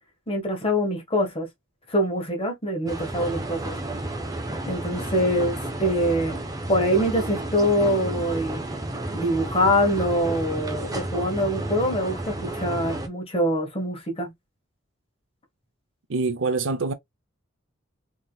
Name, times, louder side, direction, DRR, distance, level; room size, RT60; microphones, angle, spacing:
voice 1, 0.3-1.5 1.9-3.7 4.6-6.4 6.7-8.6 9.1-14.3, equal, 30° left, 1.6 m, -24 dB
sound 1, 2.9-13.1, right 1 dB, 20° right, 1.0 m, -32 dB
voice 2, 16.1-16.9, right 3 dB, 75° right, 0.7 m, -25 dB
3.8 x 3.8 x 2.4 m
head